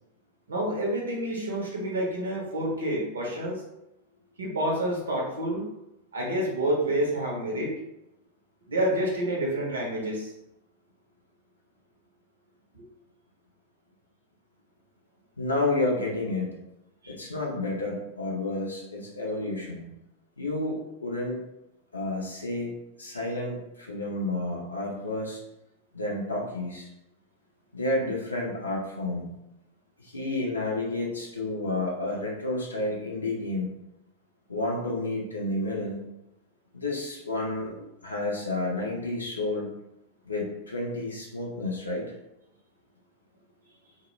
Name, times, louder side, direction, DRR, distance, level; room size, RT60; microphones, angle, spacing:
voice 1, 0.5-3.6 4.4-5.7 6.1-7.7 8.7-10.3 17.0-17.1, right 1 dB, 70° right, -2 dB, 0.7 m, -28 dB
voice 2, 15.4-16.6 17.1-19.9 20.4-21.4 21.9-22.7 23.0-25.4 25.9-26.9 27.7-29.3 30.0-33.7 34.5-36.0 36.7-39.7 40.3-42.0, left 2 dB, 80° left, -2 dB, 0.5 m, -30 dB
2.1 x 2.0 x 3.0 m, 0.88 s
figure-of-eight pair, 90°, 0 cm